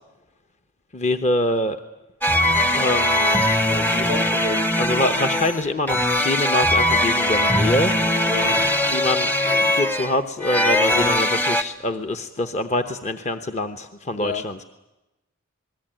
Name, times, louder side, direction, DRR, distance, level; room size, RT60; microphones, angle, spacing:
voice 1, 0.9-1.8 2.7-3.5 4.8-7.9 8.9-14.6, left 1 dB, 30° left, 0.9 m, -25 dB
sound 1, 2.2-11.6, left 1 dB, 10° left, 0.9 m, -20 dB
sound 2, 3.5-12.2, left 2 dB, 75° left, 7.0 m, -48 dB
voice 2, 3.7-4.7 8.3-8.6 14.1-14.4, left 2 dB, 50° left, 1.3 m, -30 dB
28.0 x 20.5 x 9.0 m
head